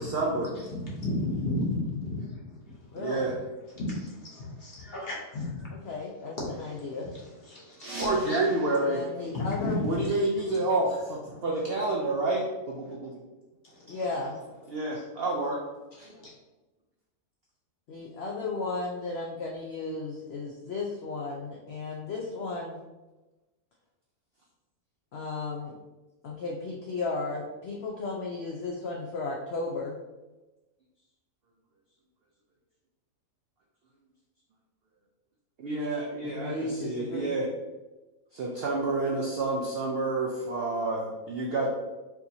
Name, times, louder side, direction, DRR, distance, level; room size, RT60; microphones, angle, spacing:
voice 1, 0.0-0.5 2.9-3.4 8.0-9.0 9.8-13.2 13.9-14.0 14.7-15.6 16.0-16.1 35.6-37.5 38.3-41.7, right 2 dB, 70° right, -2 dB, 0.5 m, -29 dB
voice 2, 0.7-2.7 3.2-3.3 3.7-5.7 6.4-6.8 7.5-8.4 9.3-10.1 13.7-13.9 16.0-16.3, left 2 dB, 45° left, -4 dB, 1.0 m, -33 dB
voice 3, 2.9-3.2 5.8-7.2 8.8-9.8 13.9-14.4 17.9-22.8 25.1-25.7 26.2-30.0 36.4-37.4, left 3 dB, 65° left, -2 dB, 0.6 m, -34 dB
sound 1, 7.7-10.4, right 2 dB, 85° right, 1.4 m, -44 dB
4.5 x 2.9 x 2.6 m, 1.1 s
omnidirectional pair, 1.6 m